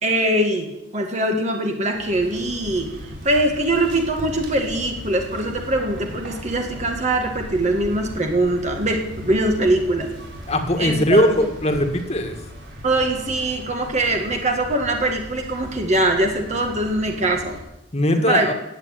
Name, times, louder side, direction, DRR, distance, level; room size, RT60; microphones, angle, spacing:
voice 1, 0.0-0.7 0.9-10.1 10.8-11.5 12.8-17.6 18.1-18.5, right 1 dB, 35° right, 3 dB, 1.8 m, -22 dB
sound 1, 1.9-17.6, equal, 70° right, 4.3 m, -37 dB
voice 2, 10.5-12.4 17.9-18.5, left 1 dB, 30° left, 5 dB, 1.9 m, -19 dB
17.0 x 8.7 x 9.0 m, 0.92 s
head